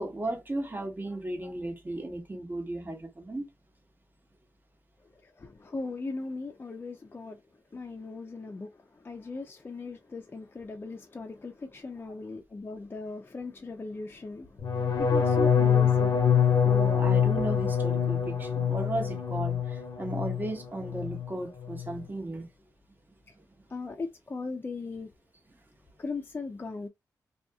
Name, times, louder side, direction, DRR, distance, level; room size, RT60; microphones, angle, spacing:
voice 1, 0.0-3.4 16.6-19.6 20.0-22.5, right 2 dB, 30° right, 1.2 m, -35 dB
voice 2, 5.4-7.4 7.7-8.7 9.0-14.6 15.0-16.1 23.7-25.1 26.0-26.9, left 3 dB, 30° left, 0.5 m, -38 dB
sound 1, 14.6-20.5 20.8-21.3 21.6-22.0, left 7 dB, 70° left, 0.7 m, -25 dB
2.7 x 2.6 x 2.3 m
cardioid pair, 70°, 7 cm